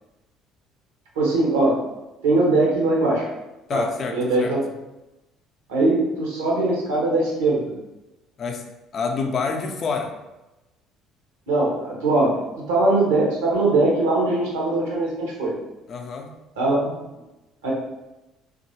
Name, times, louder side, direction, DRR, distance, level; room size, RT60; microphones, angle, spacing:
voice 1, 1.2-1.7 2.2-3.3 3.7-3.8 4.1-4.6 5.7-7.6 11.5-12.3 12.7-15.5 16.6-16.9 17.6-17.7, right 2 dB, 70° right, -3 dB, 0.8 m, -21 dB
voice 2, 3.7-4.5 8.4-8.6 8.9-10.1 15.9-16.3, left 5 dB, 45° left, 3 dB, 0.4 m, -27 dB
2.9 x 2.4 x 2.7 m, 0.99 s
figure-of-eight pair, 55°, 0 cm